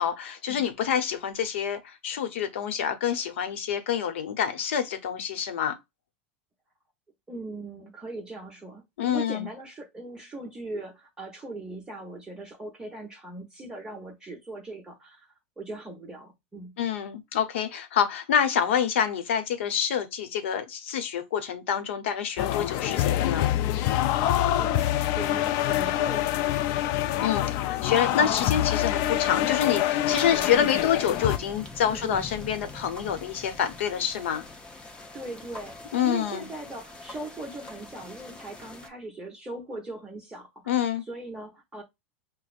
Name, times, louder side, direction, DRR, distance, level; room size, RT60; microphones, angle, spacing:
voice 1, 0.0-5.8 9.0-9.5 16.8-23.5 27.2-34.5 35.9-36.5 40.7-41.0, left 8 dB, 85° left, 0.8 m, -27 dB
voice 2, 7.3-15.3 15.6-16.8 24.5-26.5 27.1-27.3 30.3-30.7 31.9-32.3 35.1-41.8, right 2 dB, 15° right, 1.0 m, -40 dB
sound 1, 22.4-31.4, left 13 dB, 50° left, 0.3 m, -25 dB
sound 2, 30.0-38.9, left 2 dB, 15° left, 0.7 m, -44 dB
5.7 x 2.0 x 2.5 m
supercardioid pair, 130°, 6 cm